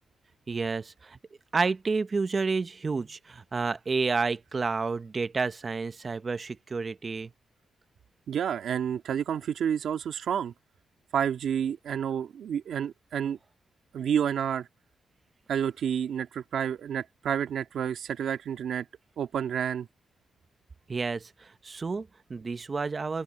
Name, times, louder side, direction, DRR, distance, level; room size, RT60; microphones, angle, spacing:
voice 1, 0.5-1.2 1.5-7.3 20.9-23.2, right 4 dB, 35° right, 1.0 m, -30 dB
voice 2, 8.3-10.5 11.1-13.4 13.9-14.7 15.5-18.9 19.2-19.9, right 8 dB, 80° right, 1.9 m, -29 dB
open air
cardioid pair, 95°, 0 cm